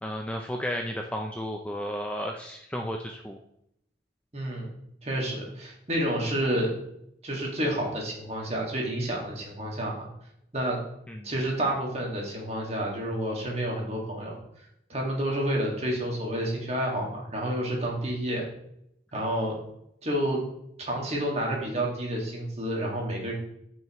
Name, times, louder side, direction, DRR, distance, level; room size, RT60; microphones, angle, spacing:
voice 1, 0.0-3.4 11.1-11.3, equal, 5° left, 2 dB, 0.4 m, -33 dB
voice 2, 4.3-4.7 5.0-6.7 7.2-10.1 10.5-10.8 11.2-14.4 14.9-18.4 19.1-19.6 20.0-20.4 20.9-23.3, right 1 dB, 35° right, -1 dB, 1.8 m, -29 dB
9.1 x 5.4 x 3.0 m, 0.76 s
head